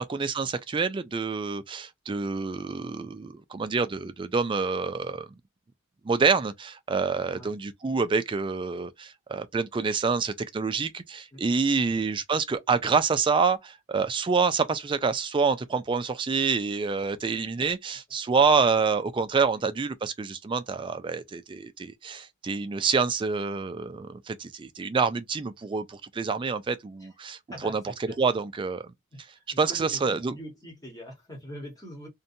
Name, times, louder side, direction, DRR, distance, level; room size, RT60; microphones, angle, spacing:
voice 1, 0.0-5.3 6.0-28.9 29.6-30.4, right 5 dB, 25° right, 0.3 m, -27 dB
voice 2, 27.5-28.2 29.5-32.1, equal, 15° left, 1.1 m, -42 dB
2.6 x 2.2 x 2.6 m
head